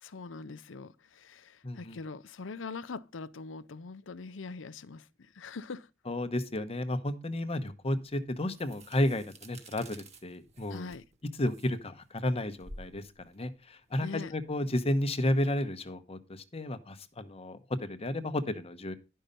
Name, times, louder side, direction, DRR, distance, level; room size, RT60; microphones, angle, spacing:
voice 1, 0.0-5.9 10.7-11.0 14.0-14.3, left 4 dB, 85° left, 0.6 m, -42 dB
voice 2, 1.6-2.0 6.1-10.9 11.4-18.9, left 1 dB, 30° left, 1.0 m, -32 dB
sound 1, 7.9-14.6, right 1 dB, 35° right, 1.6 m, -52 dB
11.5 x 5.5 x 5.2 m
head